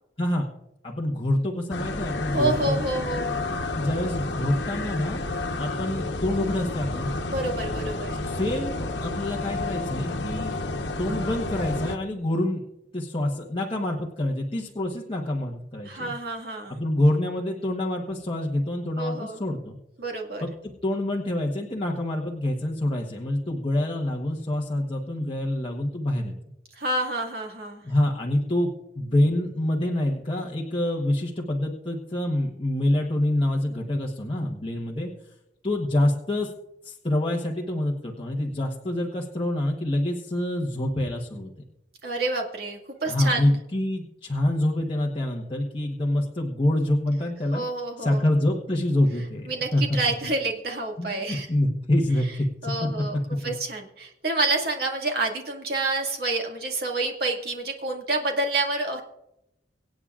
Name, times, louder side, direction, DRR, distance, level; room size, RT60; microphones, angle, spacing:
voice 1, 0.8-2.8 3.7-5.2 5.6-7.1 8.2-10.6 11.0-12.6 12.9-16.1 16.7-19.8 20.4-20.5 20.8-26.3 27.8-28.7 28.9-35.1 35.6-36.5 36.8-41.5 43.0-47.6 48.0-49.8 51.0-52.9 53.4-53.6, left 1 dB, 30° left, -2 dB, 1.1 m, -26 dB
sound 1, 1.7-12.0, left 2 dB, 85° left, 1.1 m, -30 dB
voice 2, 2.3-3.6 7.3-8.2 15.8-16.8 19.0-19.4 20.0-20.4 26.8-27.8 42.0-43.5 47.5-48.2 49.5-51.5 52.6-53.2 53.4-59.0, right 2 dB, 60° right, 1 dB, 2.1 m, -28 dB
25.0 x 8.5 x 2.5 m, 0.85 s
head